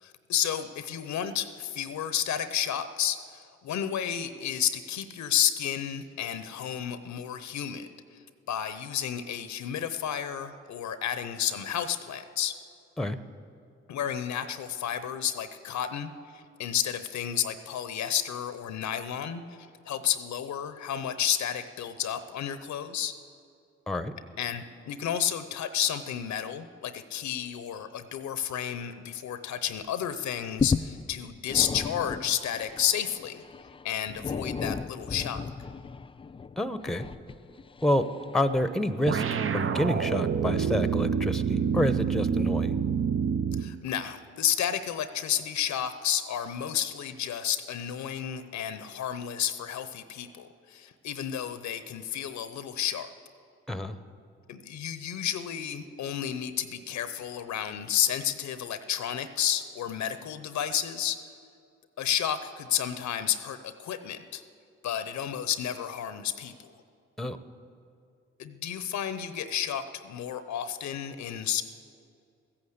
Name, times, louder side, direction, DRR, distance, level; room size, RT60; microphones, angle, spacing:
voice 1, 0.0-7.9 8.5-12.6 13.9-19.4 19.9-23.1 24.4-33.4 33.8-35.4 43.6-53.1 54.5-61.2 62.0-64.4 64.8-66.7 68.4-71.6, left 9 dB, 70° left, 12 dB, 0.8 m, -31 dB
sound 1, 29.7-29.9 30.2-38.9 39.5-39.6, left 5 dB, 20° left, 0.4 m, -35 dB
voice 2, 36.6-37.0 37.8-38.1 38.3-39.2 39.5-42.8 53.7-53.9 67.2-67.4, left 1 dB, ahead, 12 dB, 0.9 m, -28 dB
sound 2, 39.1-43.8, right 7 dB, 45° right, 0.7 m, -27 dB
14.5 x 8.7 x 8.2 m, 2.4 s
hypercardioid pair, 45°, 30 cm